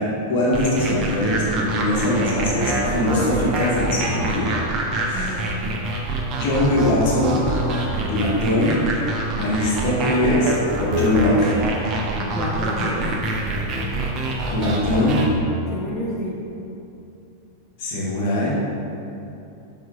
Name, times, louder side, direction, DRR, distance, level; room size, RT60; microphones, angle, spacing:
voice 1, 0.0-4.6 5.1-5.3 6.3-7.4 8.1-8.8 9.4-10.5 10.8-11.6 14.5-15.3 17.8-18.5, left 1 dB, 50° left, -6 dB, 1.1 m, -21 dB
sound 1, 0.5-15.3, right 2 dB, 35° right, 0.5 m, -25 dB
voice 2, 5.1-5.7 12.3-13.1 15.7-16.4, equal, 10° left, -6 dB, 0.6 m, -29 dB
7.2 x 2.8 x 2.4 m, 2.8 s
figure-of-eight pair, 90°, 0 cm